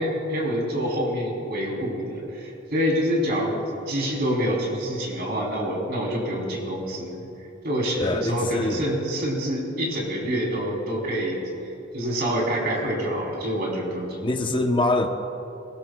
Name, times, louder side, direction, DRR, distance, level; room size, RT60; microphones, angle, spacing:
voice 1, 0.0-7.2 7.6-11.4 11.9-14.6, equal, 55° right, -2 dB, 3.3 m, -27 dB
voice 2, 8.0-8.8 14.2-15.1, left 2 dB, 25° left, 6 dB, 0.7 m, -24 dB
20.0 x 17.5 x 2.3 m, 2.8 s
head